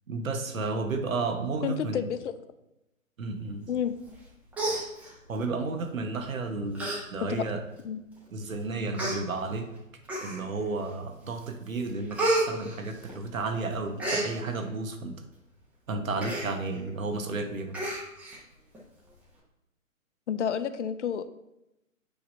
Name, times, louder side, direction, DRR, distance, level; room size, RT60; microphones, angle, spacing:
voice 1, 0.1-2.1 3.2-3.7 5.3-7.6 8.3-9.7 10.2-15.2 15.9-17.8, right 3 dB, 75° right, 5 dB, 1.3 m, -32 dB
voice 2, 1.6-2.3 3.7-4.0 7.2-7.5 7.8-8.0 20.3-21.3, left 8 dB, 60° left, 12 dB, 0.6 m, -30 dB
Human voice, 4.1-4.2 4.5-5.4 6.2-6.3 6.7-7.0 7.4-7.5 8.3-8.4 8.9-9.2 10.0-10.6 11.1-11.4 11.7-13.4 13.7-14.3 16.2-16.5 16.9-17.0 17.2-17.4 17.7-18.4 18.7-18.8, right 1 dB, 5° right, 1.0 m, -30 dB
8.5 x 2.9 x 5.3 m, 0.90 s
hypercardioid pair, 140°, 40 cm